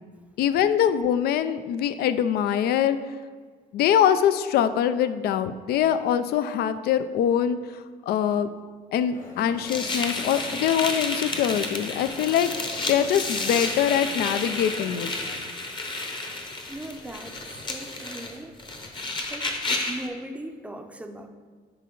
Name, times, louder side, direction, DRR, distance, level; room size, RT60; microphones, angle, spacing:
voice 1, 0.4-3.0 3.7-8.5 8.9-12.5 12.9-15.1, left 9 dB, 70° left, 12 dB, 0.4 m, -23 dB
Crowd, 9.1-15.4, left 2 dB, 50° left, 1.5 m, -42 dB
sound 1, 9.7-20.1, left 2 dB, 30° left, 1.0 m, -31 dB
voice 2, 16.7-18.6 19.3-21.3, right 1 dB, 10° right, 5 dB, 0.6 m, -39 dB
10.0 x 4.3 x 3.8 m, 1.5 s
cardioid pair, 110°, 17 cm